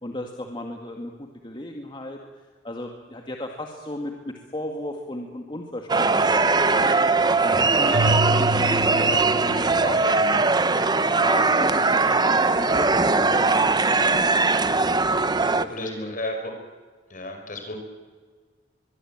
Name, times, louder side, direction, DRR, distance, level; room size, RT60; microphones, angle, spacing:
voice 1, 0.0-2.2 2.6-10.4 11.2-14.2 15.1-16.2, left 1 dB, 25° left, 2 dB, 2.1 m, -35 dB
sound 1, 5.9-15.6, right 3 dB, 20° right, 0.9 m, -20 dB
Keyboard (musical), 7.9-10.2, right 1 dB, 75° right, 1.1 m, -27 dB
voice 2, 15.7-16.5 17.1-17.8, left 1 dB, 45° left, 5 dB, 5.2 m, -33 dB
23.0 x 23.0 x 8.9 m, 1.5 s
head